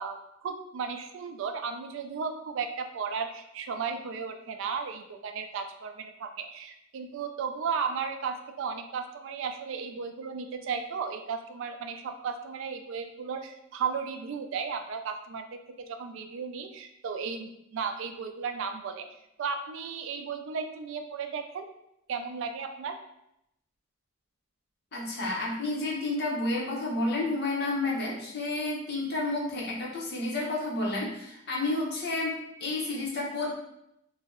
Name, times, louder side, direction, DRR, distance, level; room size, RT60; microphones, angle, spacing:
voice 1, 0.0-15.5 15.9-19.1 19.4-21.7 22.1-23.0, right 5 dB, 70° right, 6 dB, 0.3 m, -35 dB
voice 2, 24.9-33.5, left 2 dB, 55° left, -4 dB, 0.8 m, -30 dB
2.7 x 2.0 x 3.6 m, 0.80 s
head